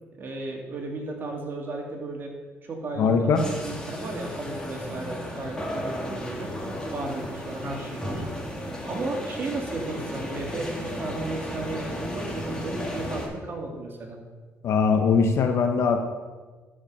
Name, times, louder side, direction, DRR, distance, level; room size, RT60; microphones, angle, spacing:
voice 1, 0.2-2.3 2.6-6.5 6.9-8.2 8.9-14.2, right 2 dB, 45° right, 0 dB, 2.3 m, -34 dB
voice 2, 3.0-3.4 14.6-16.0, left 5 dB, 60° left, 5 dB, 0.9 m, -21 dB
sound 1, 3.4-13.3, equal, 15° left, 2.2 m, -34 dB
12.0 x 5.0 x 5.5 m, 1.3 s
cardioid pair, 95°, 5 cm